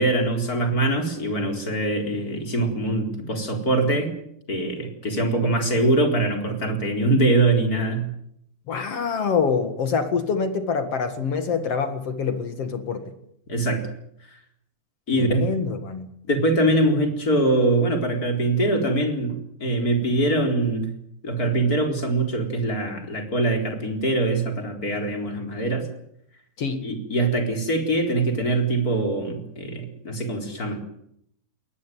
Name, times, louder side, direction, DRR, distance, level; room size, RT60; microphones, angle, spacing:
voice 1, 0.0-4.1 4.5-8.1 13.5-13.8 15.1-15.5 16.3-19.3 19.6-20.9 21.2-25.9 26.8-30.8, right 2 dB, 25° left, 4 dB, 4.2 m, -23 dB
voice 2, 8.7-13.1 15.2-16.1 26.6-26.9, left 5 dB, 50° left, 9 dB, 2.3 m, -25 dB
21.0 x 20.0 x 9.4 m, 0.74 s
omnidirectional pair, 4.2 m